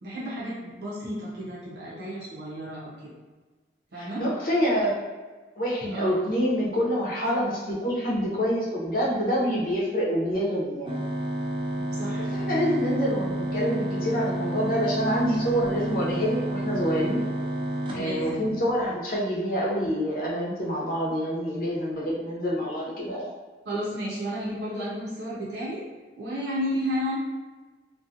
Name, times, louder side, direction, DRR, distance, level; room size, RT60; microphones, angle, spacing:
voice 1, 0.0-3.1 3.9-4.2 5.9-6.2 11.8-12.4 17.9-18.5 23.7-25.8 26.2-27.2, equal, 75° right, -7 dB, 0.7 m, -32 dB
voice 2, 4.0-5.0 5.6-11.0 12.2-17.3 17.9-23.3, equal, 50° left, -4 dB, 0.6 m, -26 dB
sound 1, 10.9-18.9, right 1 dB, 30° right, 0.4 m, -30 dB
2.5 x 2.2 x 2.7 m, 1.3 s
head